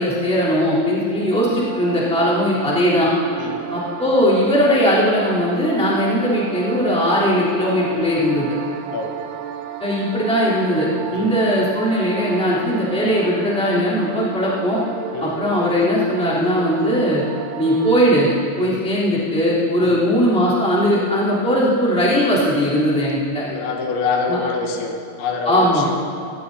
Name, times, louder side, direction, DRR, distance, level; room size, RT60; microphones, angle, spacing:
voice 1, 0.0-3.1 3.7-8.5 9.8-14.8 15.2-17.2 17.6-18.3 18.6-23.4 24.3-24.4 25.4-25.9, equal, ahead, -8 dB, 2.7 m, -19 dB
sound 1, 1.3-18.5, right 9 dB, 85° right, 2.3 m, -33 dB
voice 2, 23.4-26.0, left 4 dB, 90° left, 2 dB, 3.6 m, -25 dB
19.0 x 16.5 x 2.8 m, 2.6 s
omnidirectional pair, 5.1 m